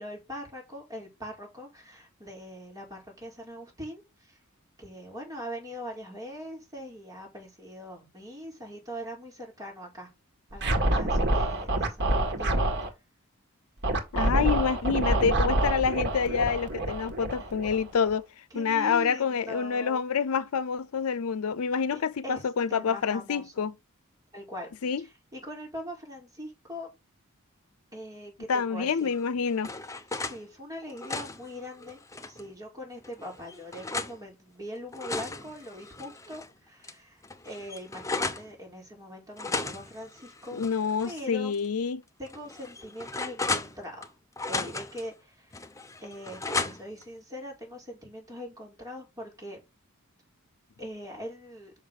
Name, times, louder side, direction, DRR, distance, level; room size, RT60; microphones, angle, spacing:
voice 1, 0.0-4.4 4.8-10.1 10.5-12.6 18.5-20.0 21.9-22.4 22.7-23.7 24.3-24.7 25.0-26.9 27.9-29.1 30.1-32.0 32.2-40.6 41.0-41.5 42.2-44.1 44.5-45.6 46.0-49.6 50.8-51.7, equal, 15° right, 4.9 m, -42 dB
Scratching (performance technique), 10.6-12.9 13.8-18.1, right 1 dB, 50° right, 1.8 m, -27 dB
voice 2, 14.1-18.3 18.6-23.7 24.8-25.0 28.5-29.7 40.5-42.0, left 6 dB, 75° left, 0.5 m, -27 dB
sound 1, 29.1-30.4 30.8-32.5 33.0-34.2 34.7-36.5 36.8-36.9 37.2-38.5 39.4-41.2 41.5-41.7 42.3-44.1 44.4-45.1 45.5-47.0, left 3 dB, 15° left, 0.8 m, -35 dB
6.4 x 5.8 x 6.5 m
head